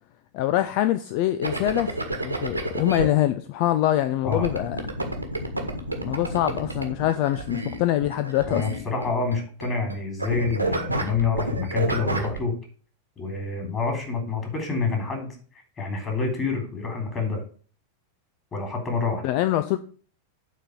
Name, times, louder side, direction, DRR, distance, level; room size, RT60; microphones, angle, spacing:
voice 1, 0.3-1.9 2.2-4.8 6.0-8.6 19.2-19.8, left 13 dB, 45° left, 0.5 m, -24 dB
sound 1, 1.4-3.1 4.3-9.9 10.2-12.4, right 1 dB, 85° right, 1.6 m, -29 dB
voice 2, 8.5-12.5 13.2-15.4 15.8-17.4 18.5-19.2, left 4 dB, 25° left, 3.8 m, -27 dB
9.0 x 4.3 x 7.0 m
figure-of-eight pair, 90°, 0 cm